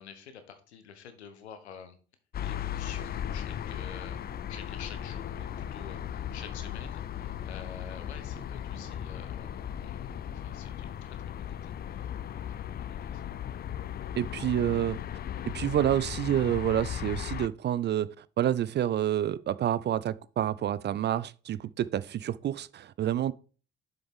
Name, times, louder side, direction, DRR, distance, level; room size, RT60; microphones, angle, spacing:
voice 1, 0.0-2.0 2.4-9.5 9.8-12.2 12.5-13.2, left 7 dB, 80° left, 0.9 m, -49 dB
sound 1, 2.3-17.5, left 10 dB, 30° left, 0.4 m, -37 dB
sound 2, 4.0-7.0 7.5-10.5, equal, ahead, 1.5 m, -53 dB
voice 2, 14.2-15.0 15.5-23.3, right 11 dB, 35° right, 0.4 m, -28 dB
7.0 x 6.5 x 3.6 m
figure-of-eight pair, 45°, 32 cm